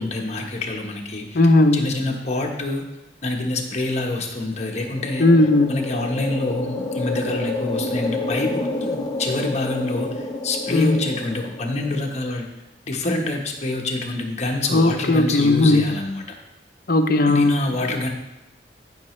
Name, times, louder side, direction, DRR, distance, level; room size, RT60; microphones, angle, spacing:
voice 1, 0.0-1.4 1.7-2.9 3.2-5.3 5.7-12.5 12.9-16.2 17.3-18.1, left 2 dB, 40° left, 1 dB, 1.2 m, -26 dB
voice 2, 1.3-1.9 5.2-5.8 10.7-11.1 14.7-16.0 16.9-17.6, left 2 dB, 55° left, 7 dB, 0.7 m, -17 dB
sound 1, 4.5-12.2, left 2 dB, 25° left, 0.8 m, -29 dB
14.0 x 5.9 x 3.2 m, 0.96 s
head